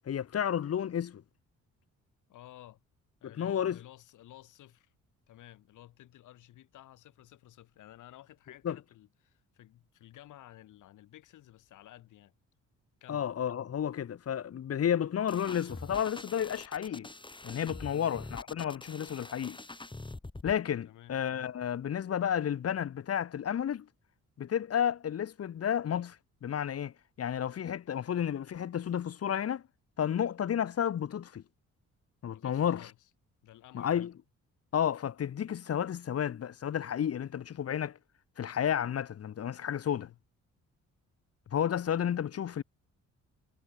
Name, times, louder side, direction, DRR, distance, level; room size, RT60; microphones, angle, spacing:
voice 1, 0.0-1.2 3.4-3.8 8.6-8.8 13.1-17.1 17.4-19.6 20.4-23.9 24.4-29.6 30.0-31.4 32.2-32.9 33.7-34.1 34.7-38.0 38.4-40.1 41.5-42.6, left 9 dB, 50° left, 1.5 m, -32 dB
voice 2, 2.3-2.8 3.2-4.9 5.3-12.3 13.0-13.3 17.9-18.1 20.8-21.2 32.2-33.1 33.4-33.9 39.9-40.2, left 14 dB, 85° left, 6.6 m, -54 dB
sound 1, 15.3-20.6, left 2 dB, 15° left, 6.3 m, -45 dB
cardioid pair, 90°, 30 cm